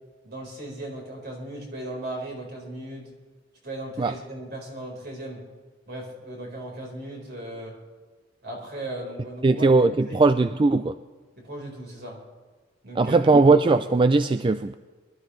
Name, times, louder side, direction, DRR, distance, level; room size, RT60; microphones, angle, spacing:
voice 1, 0.2-3.1 3.6-5.5 5.9-7.8 8.4-9.7 10.1-10.2 11.4-12.2 12.8-13.3, right 1 dB, 55° right, -1 dB, 4.5 m, -37 dB
voice 2, 9.4-10.9 13.0-14.7, right 3 dB, 25° right, 11 dB, 0.3 m, -19 dB
23.5 x 12.5 x 3.2 m, 1.4 s
head